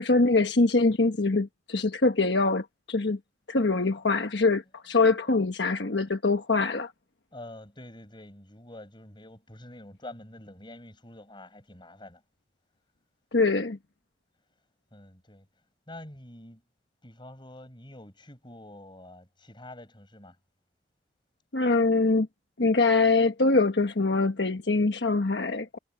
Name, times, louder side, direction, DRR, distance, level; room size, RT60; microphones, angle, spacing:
voice 1, 0.0-3.2 3.5-6.9 13.3-13.8 21.5-22.3 22.6-25.8, left 3 dB, 75° left, 1.2 m, -24 dB
voice 2, 4.6-5.1 7.3-12.2 14.9-15.5 15.9-16.6 17.0-20.4, left 1 dB, 25° left, 6.4 m, -47 dB
head